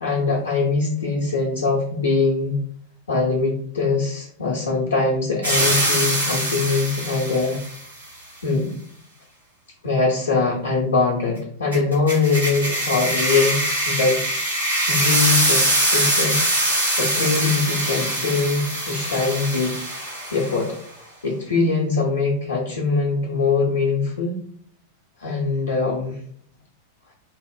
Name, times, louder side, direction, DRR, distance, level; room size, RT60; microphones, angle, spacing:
voice 1, 0.0-2.6 3.1-7.6 8.4-8.8 9.8-13.6 13.9-14.2 14.9-16.4 16.6-19.8 20.3-20.8 21.2-24.4 25.2-26.2, left 4 dB, 70° left, -3 dB, 0.6 m, -22 dB
sound 1, 5.4-7.8 11.7-20.7, right 1 dB, 85° right, 1.2 m, -23 dB
4.1 x 2.0 x 2.2 m, 0.63 s
figure-of-eight pair, 90°, 0 cm